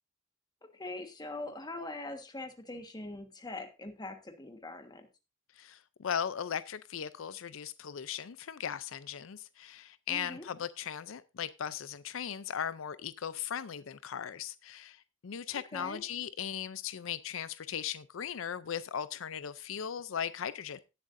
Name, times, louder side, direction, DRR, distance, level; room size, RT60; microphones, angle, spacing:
voice 1, 0.6-5.1 10.1-10.5 15.5-16.0, left 2 dB, 20° left, 1.4 m, -42 dB
voice 2, 5.6-15.0 15.2-20.8, left 8 dB, 90° left, 0.5 m, -38 dB
17.5 x 7.6 x 2.6 m
head